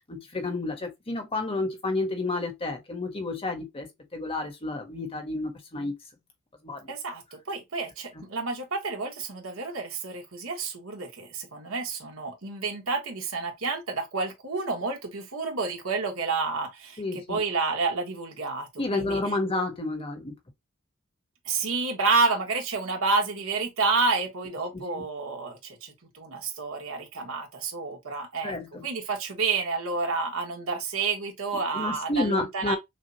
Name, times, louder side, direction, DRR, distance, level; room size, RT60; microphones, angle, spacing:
voice 1, 0.1-6.0 6.6-6.9 17.0-17.4 18.8-20.4 24.7-25.1 28.4-28.9 31.5-32.8, left 2 dB, 25° left, 1.2 m, -30 dB
voice 2, 6.9-17.0 17.3-19.2 21.4-28.5 28.8-32.8, right 4 dB, 70° right, 1.6 m, -29 dB
6.2 x 2.4 x 2.8 m
head